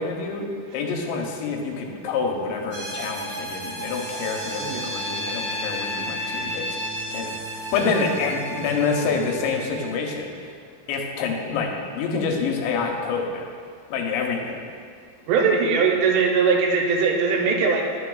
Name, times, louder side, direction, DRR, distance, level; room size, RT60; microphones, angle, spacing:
voice 1, 0.0-6.8 7.1-10.5 10.9-13.5 13.9-14.7, left 4 dB, 85° left, 1 dB, 2.9 m, -27 dB
sound 1, 2.7-9.9, equal, 60° right, 1.7 m, -32 dB
voice 2, 15.3-17.8, right 5 dB, 85° right, 0 dB, 2.9 m, -20 dB
11.0 x 6.4 x 2.3 m, 2.2 s
omnidirectional pair, 5.0 m